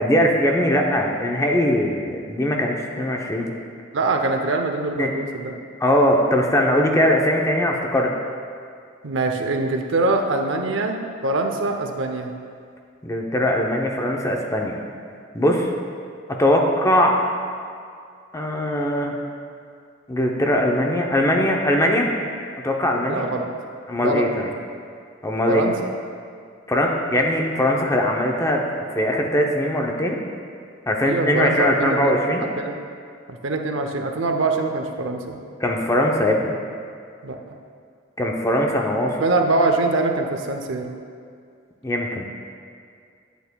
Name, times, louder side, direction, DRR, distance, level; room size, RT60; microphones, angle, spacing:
voice 1, 0.0-3.5 5.0-5.1 5.8-8.1 13.0-14.8 15.3-15.7 16.3-17.2 18.3-19.1 20.1-22.1 22.6-23.2 23.9-24.5 25.2-25.7 26.7-28.6 29.0-30.2 30.9-32.5 35.6-36.6 38.2-39.2 41.8-42.2, left 1 dB, 15° left, 1 dB, 0.6 m, -20 dB
voice 2, 3.9-5.5 9.0-12.3 23.1-23.5 24.0-24.3 25.5-25.9 31.0-32.2 32.6-32.8 33.3-35.4 37.2-37.4 39.2-40.9, right 2 dB, 75° right, 4 dB, 0.6 m, -23 dB
9.9 x 8.1 x 2.2 m, 2.3 s
head